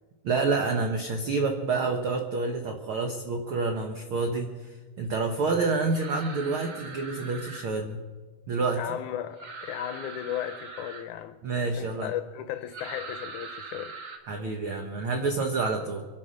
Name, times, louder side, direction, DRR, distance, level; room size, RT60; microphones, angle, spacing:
voice 1, 0.2-8.0 8.5-8.8 11.4-12.1 14.3-16.1, right 3 dB, 80° right, 1.2 m, -28 dB
sound 1, 5.9-7.7 9.4-11.1 12.7-14.2, right 4 dB, 45° right, 1.5 m, -41 dB
voice 2, 8.8-11.4 11.7-14.0, left 11 dB, 80° left, 1.9 m, -35 dB
24.0 x 8.8 x 6.4 m
omnidirectional pair, 3.9 m